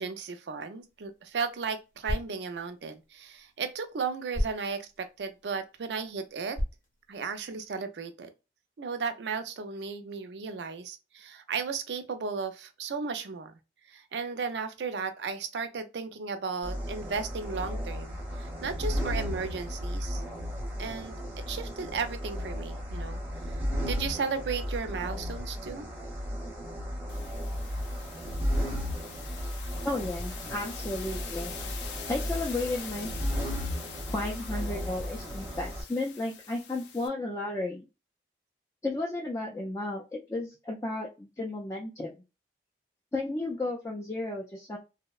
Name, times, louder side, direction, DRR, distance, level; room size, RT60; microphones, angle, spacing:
voice 1, 0.0-6.6 7.1-8.3 8.8-13.5 13.9-20.2 20.8-23.2 23.5-23.6 23.9-25.9, right 5 dB, 80° right, 0.4 m, -35 dB
sound 1, 0.8-7.7, equal, 50° left, 0.7 m, -39 dB
sound 2, 16.6-35.8, equal, 10° right, 0.7 m, -34 dB
sound 3, 27.1-37.1, left 7 dB, 85° left, 0.4 m, -44 dB
voice 2, 29.8-31.5 32.1-33.1 34.1-37.8 38.8-42.1 43.1-44.8, left 2 dB, 15° left, 0.3 m, -33 dB
2.6 x 2.0 x 2.3 m
head